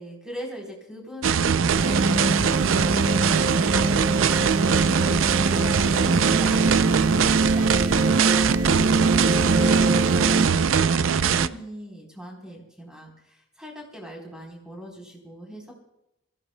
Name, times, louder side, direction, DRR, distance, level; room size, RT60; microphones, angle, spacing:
voice 1, 0.0-4.5 5.3-8.9 9.5-15.7, equal, 5° right, -1 dB, 3.8 m, -41 dB
sound 1, 1.2-11.5, right 6 dB, 85° right, 0.5 m, -22 dB
sound 2, 1.7-10.5, right 2 dB, 45° right, 1.0 m, -24 dB
26.5 x 15.5 x 2.2 m, 0.86 s
head